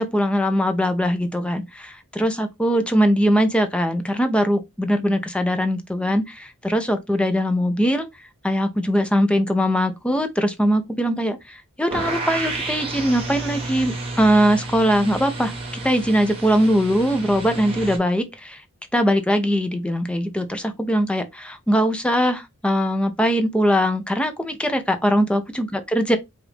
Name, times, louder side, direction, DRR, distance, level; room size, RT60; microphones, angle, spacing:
voice 1, 0.0-8.1 8.4-18.6 18.9-26.2, equal, 5° left, 0.6 m, -21 dB
sound 1, 11.9-18.0, right 2 dB, 25° right, 1.4 m, -31 dB
4.9 x 2.6 x 3.3 m
head